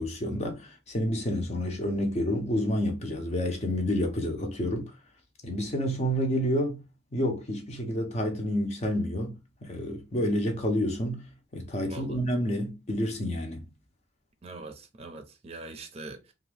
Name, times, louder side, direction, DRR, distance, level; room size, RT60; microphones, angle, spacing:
voice 1, 0.0-4.9 5.4-6.8 7.1-11.2 11.5-13.6, equal, 40° left, 0.7 m, -29 dB
voice 2, 11.9-12.2 14.4-16.3, right 2 dB, 35° right, 0.5 m, -42 dB
2.7 x 2.4 x 3.3 m
head